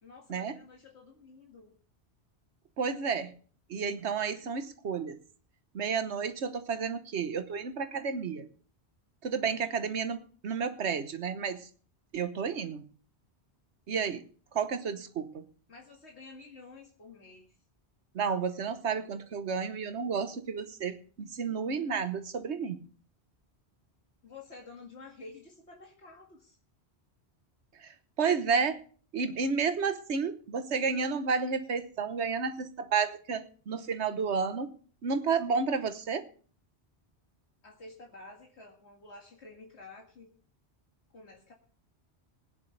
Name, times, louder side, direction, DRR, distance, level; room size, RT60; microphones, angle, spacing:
voice 1, 0.0-1.7 15.7-17.5 24.2-26.6 37.6-40.3 41.1-41.5, left 3 dB, 80° left, -1 dB, 2.3 m, -50 dB
voice 2, 2.8-3.3 3.7-5.2 5.7-8.5 9.2-11.7 12.1-12.8 13.9-14.2 14.5-15.5 18.1-22.8 27.8-28.8 29.1-34.7 35.0-36.3, right 5 dB, 85° right, 10 dB, 1.3 m, -31 dB
20.5 x 9.8 x 3.3 m, 0.43 s
omnidirectional pair, 1.1 m